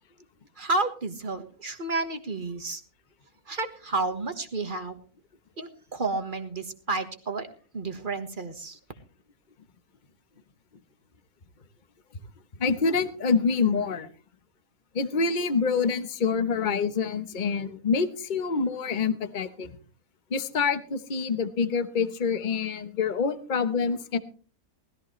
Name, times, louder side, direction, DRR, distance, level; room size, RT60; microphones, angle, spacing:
voice 1, 0.6-2.8 3.5-5.0 5.6-7.5 7.7-8.8, right 3 dB, 35° right, 7 dB, 1.5 m, -31 dB
voice 2, 12.6-14.1 14.9-19.7 20.3-24.2, left 5 dB, 35° left, 11 dB, 1.1 m, -26 dB
19.5 x 14.0 x 3.2 m, 0.39 s
omnidirectional pair, 1.6 m